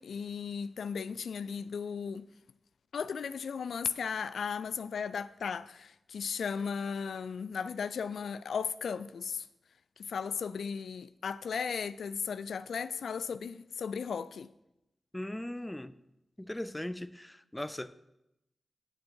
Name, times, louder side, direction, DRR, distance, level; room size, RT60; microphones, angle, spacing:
voice 1, 0.0-2.3 2.9-9.5 10.0-14.5, left 6 dB, 85° left, 0.3 m, -36 dB
voice 2, 15.1-15.9 16.4-17.9, left 1 dB, 10° left, 0.5 m, -38 dB
10.5 x 7.6 x 4.6 m
cardioid pair, 60°, 0 cm